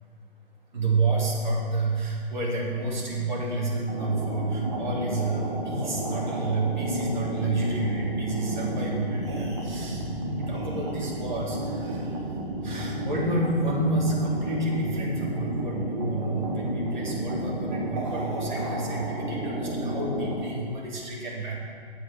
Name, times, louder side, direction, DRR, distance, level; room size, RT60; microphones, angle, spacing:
voice 1, 0.7-12.1 12.6-21.5, right 2 dB, 45° right, -5 dB, 3.3 m, -29 dB
sound 1, 3.9-20.4, right 1 dB, 30° right, 1.9 m, -31 dB
10.5 x 7.8 x 6.2 m, 2.3 s
hypercardioid pair, 175°, 31 cm